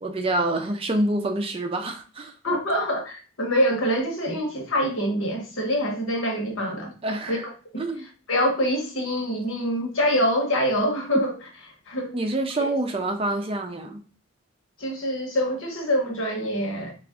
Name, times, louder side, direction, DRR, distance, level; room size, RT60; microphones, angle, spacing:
voice 1, 0.0-2.3 7.0-7.4 7.8-8.0 12.1-14.0, right 2 dB, 25° right, 0.4 m, -26 dB
voice 2, 2.4-6.9 7.3-7.4 7.7-7.8 8.3-11.3 11.9-12.2 12.6-12.7 14.8-16.9, equal, 70° left, 1.1 m, -25 dB
3.4 x 2.4 x 3.5 m
head